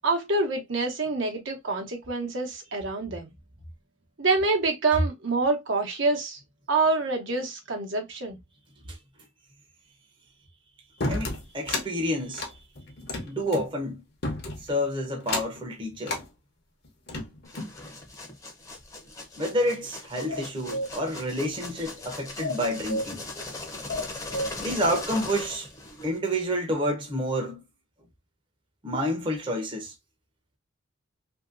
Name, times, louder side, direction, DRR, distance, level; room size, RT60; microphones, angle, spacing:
voice 1, 0.0-3.3 4.2-6.4 6.7-8.4, right 3 dB, 65° right, 0.9 m, -26 dB
sound 1, 11.0-11.9 12.3-13.7 14.2-14.7 15.2-15.6 16.0-16.3 16.8-17.8, left 2 dB, 55° left, 0.9 m, -32 dB
voice 2, 11.1-12.6 13.3-14.0 14.6-16.2 19.4-23.2 24.6-25.7 26.0-27.6 28.8-29.9, equal, 25° right, 0.7 m, -29 dB
sound 2, 17.4-26.2, left 2 dB, 15° left, 0.7 m, -40 dB
sound 3, 20.3-20.9 22.4-23.1 23.9-24.5, equal, 90° left, 0.6 m, -31 dB
2.8 x 2.7 x 2.5 m
head